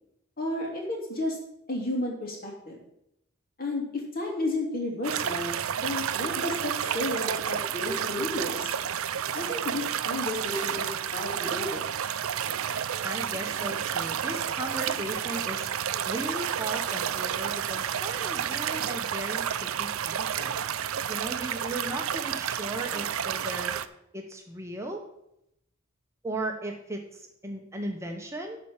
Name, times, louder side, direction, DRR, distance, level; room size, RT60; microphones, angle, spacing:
voice 1, 0.4-1.4 1.7-2.8 3.6-8.7 9.3-11.9, left 1 dB, 45° left, -1 dB, 2.9 m, -32 dB
sound 1, 5.0-23.9, right 9 dB, 80° right, 0.5 m, -31 dB
voice 2, 13.0-15.7 16.0-20.5 21.1-23.8 24.1-25.0 26.2-28.6, right 1 dB, 15° right, 2 dB, 0.9 m, -36 dB
11.0 x 4.3 x 7.2 m, 0.79 s
head